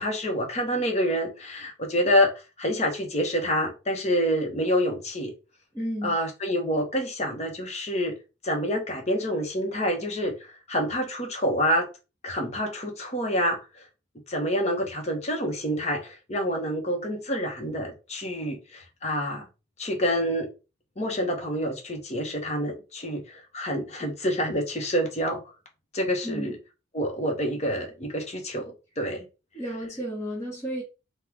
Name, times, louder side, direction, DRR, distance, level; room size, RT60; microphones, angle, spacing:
voice 1, 0.0-2.3 2.6-5.3 6.0-8.2 8.4-11.9 12.2-13.8 14.3-19.5 19.8-20.5 21.0-25.4 25.9-26.6 26.9-29.2, equal, 35° left, 3 dB, 1.0 m, -27 dB
voice 2, 5.7-6.1 26.2-26.5 29.5-30.8, equal, 15° left, -6 dB, 1.2 m, -32 dB
3.8 x 2.4 x 4.5 m, 0.30 s
head